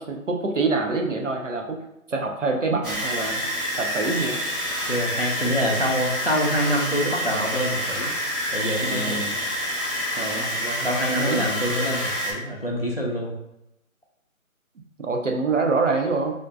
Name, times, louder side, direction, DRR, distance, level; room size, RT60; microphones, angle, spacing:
voice 1, 0.0-1.8 2.1-3.4 3.8-4.4 8.8-9.4 10.2-11.4 15.0-16.3, right 3 dB, 60° right, 2 dB, 0.6 m, -26 dB
sound 1, 2.8-12.3, equal, 40° right, 1.3 m, -28 dB
voice 2, 4.9-8.1 8.5-9.3 10.2-10.5 10.8-13.3, equal, 45° left, -2 dB, 0.5 m, -26 dB
3.5 x 2.5 x 2.5 m, 0.85 s
figure-of-eight pair, 175°, 42 cm